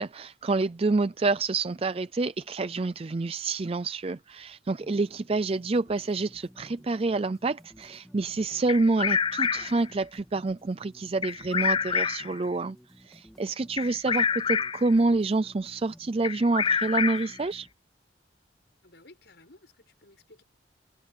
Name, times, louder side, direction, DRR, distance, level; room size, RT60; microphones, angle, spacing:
voice 1, 0.0-17.7, right 3 dB, 30° right, 0.4 m, -28 dB
sound 1, 4.8-17.7, equal, ahead, 2.8 m, -55 dB
Bird vocalization bird call bird song, 8.7-9.9 11.2-12.4 13.8-14.9 16.2-17.4, left 6 dB, 25° left, 0.4 m, -27 dB
voice 2, 18.8-20.4, left 2 dB, 65° left, 7.2 m, -55 dB
head